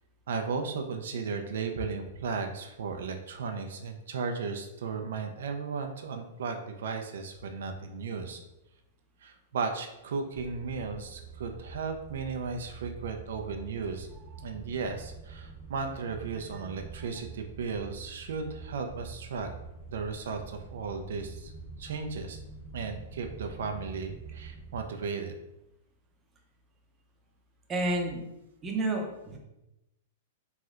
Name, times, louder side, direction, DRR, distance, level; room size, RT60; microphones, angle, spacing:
voice 1, 0.3-8.4 9.2-14.1 14.4-19.5 19.9-21.5 21.8-22.4 22.7-25.3, right 5 dB, 75° right, 4 dB, 0.3 m, -35 dB
sound 1, 10.3-24.9, right 5 dB, 40° left, 1.0 m, -46 dB
voice 2, 27.7-28.2 28.6-29.4, right 2 dB, 15° right, 0 dB, 0.5 m, -30 dB
3.1 x 2.7 x 2.4 m, 0.92 s
hypercardioid pair, 145°, 0 cm